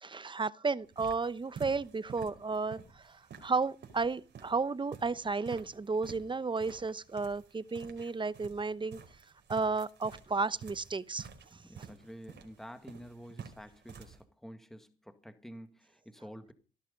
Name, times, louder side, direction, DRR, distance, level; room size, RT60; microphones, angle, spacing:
voice 1, 0.0-9.0 9.5-11.9, right 4 dB, 25° right, 0.9 m, -33 dB
sound 1, 0.8-14.2, right 7 dB, 60° right, 4.8 m, -51 dB
voice 2, 11.6-16.5, equal, ahead, 2.0 m, -49 dB
17.0 x 12.0 x 5.3 m
cardioid pair, 90°, 20 cm